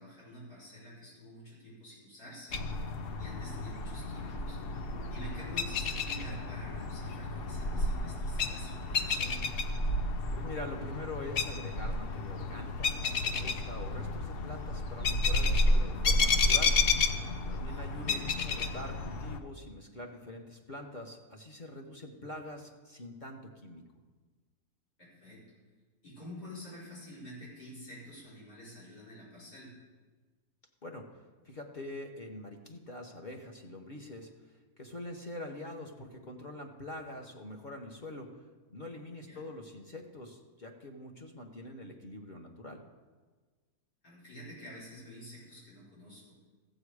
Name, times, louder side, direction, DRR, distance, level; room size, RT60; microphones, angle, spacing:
voice 1, 0.0-2.6 3.2-4.6 5.1-9.4 17.7-18.2 25.0-25.4 26.0-29.7 39.3-39.4 44.0-46.4, equal, 85° left, -7 dB, 5.3 m, -48 dB
sound 1, 2.5-19.4, left 3 dB, 60° left, 0.6 m, -31 dB
voice 2, 10.3-16.7 17.5-23.8 30.8-31.1 31.4-34.3 34.8-38.3 38.7-42.8, left 1 dB, 35° left, 1 dB, 0.9 m, -44 dB
14.5 x 7.8 x 4.8 m, 1.4 s
omnidirectional pair, 1.7 m